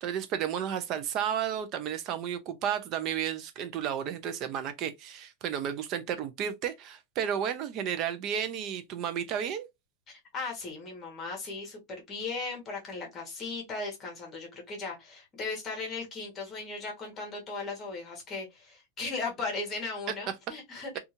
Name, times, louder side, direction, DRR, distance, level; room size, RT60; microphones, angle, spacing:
voice 1, 0.0-9.7, right 9 dB, 35° right, 0.5 m, -32 dB
voice 2, 10.1-21.0, left 3 dB, 20° left, 1.1 m, -37 dB
2.6 x 2.4 x 2.8 m
supercardioid pair, 155°, 0 cm